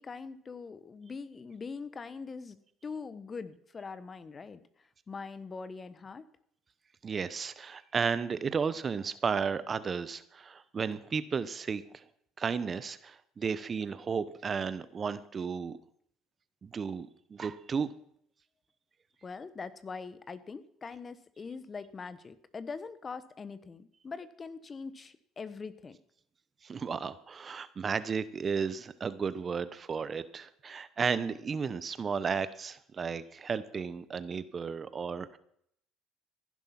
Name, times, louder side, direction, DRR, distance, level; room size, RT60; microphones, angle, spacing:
voice 1, 0.0-2.6 2.8-4.6 5.1-6.3 19.2-26.0, left 4 dB, 30° left, 14 dB, 1.2 m, -42 dB
voice 2, 7.0-12.0 12.4-15.8 16.6-17.9 26.6-35.4, right 6 dB, 35° right, 15 dB, 1.0 m, -33 dB
16.0 x 11.0 x 5.9 m, 0.69 s
supercardioid pair, 85°, 0 cm